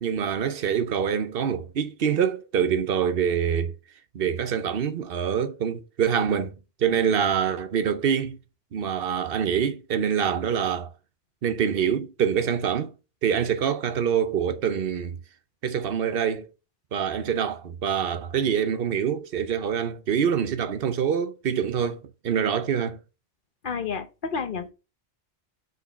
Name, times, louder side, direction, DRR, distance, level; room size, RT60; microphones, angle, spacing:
voice 1, 0.0-3.7 4.1-6.5 6.8-8.4 8.7-10.9 11.4-12.9 13.2-15.2 15.6-16.5 16.9-23.0, right 8 dB, 65° right, 1.0 m, -25 dB
voice 2, 23.6-24.7, left 5 dB, 55° left, 1.1 m, -30 dB
6.4 x 5.2 x 4.1 m
omnidirectional pair, 1.1 m